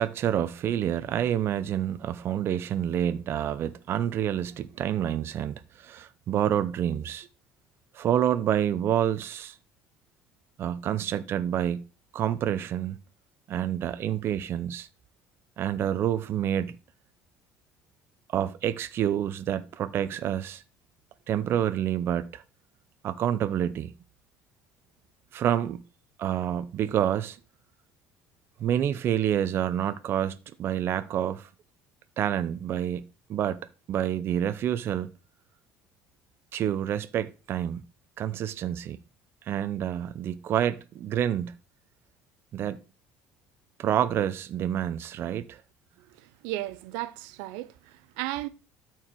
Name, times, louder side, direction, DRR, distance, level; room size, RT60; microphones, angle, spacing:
voice 1, 0.0-7.3 7.9-9.5 10.6-11.8 12.1-13.0 13.5-14.9 15.6-16.7 18.3-20.6 21.3-22.4 23.0-23.9 25.3-25.8 26.2-27.4 28.6-31.5 32.2-35.1 36.5-37.8 38.2-39.0 39.4-41.5 42.5-42.8 43.8-45.6, right 10 dB, 45° right, 0.7 m, -28 dB
voice 2, 46.4-47.7 48.2-48.5, right 16 dB, 85° right, 0.7 m, -33 dB
13.0 x 4.7 x 4.7 m
cardioid pair, 125°, 5 cm